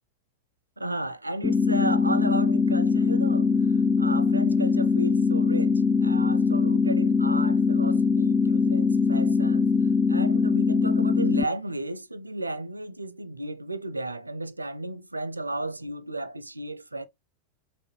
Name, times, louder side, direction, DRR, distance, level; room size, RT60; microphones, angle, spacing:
voice 1, 0.8-17.1, right 2 dB, 85° right, 0.4 m, -34 dB
sound 1, 1.4-11.4, left 4 dB, 5° left, 0.4 m, -22 dB
5.0 x 2.6 x 3.0 m
figure-of-eight pair, 90°, 0 cm